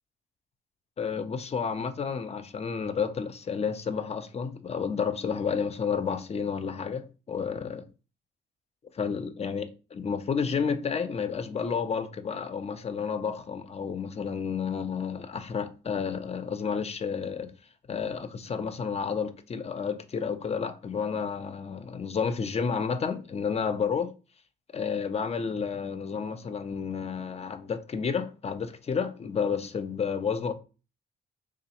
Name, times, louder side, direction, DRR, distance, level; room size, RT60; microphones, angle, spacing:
voice 1, 1.0-7.8 8.9-17.5 17.9-24.1 24.7-30.5, left 6 dB, 30° left, 0.5 m, -31 dB
3.6 x 3.0 x 2.8 m
cardioid pair, 90°, 20 cm